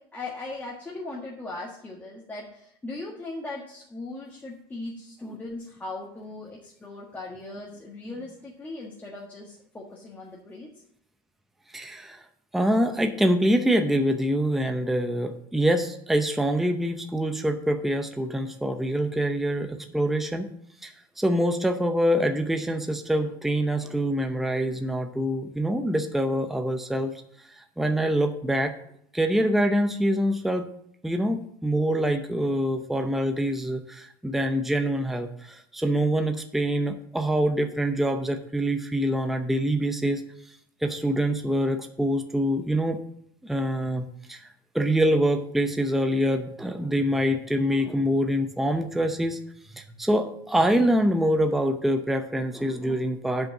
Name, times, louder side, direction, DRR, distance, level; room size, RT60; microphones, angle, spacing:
voice 1, 0.1-10.7, left 2 dB, 15° left, -3 dB, 1.5 m, -38 dB
voice 2, 11.7-12.2 12.5-20.5 20.8-27.1 27.5-28.7 29.1-30.7 31.0-40.2 40.8-43.0 43.4-44.5 44.7-49.4 49.7-53.5, equal, ahead, 6 dB, 0.6 m, -25 dB
7.6 x 5.2 x 7.0 m, 0.70 s
supercardioid pair, 125°, 12 cm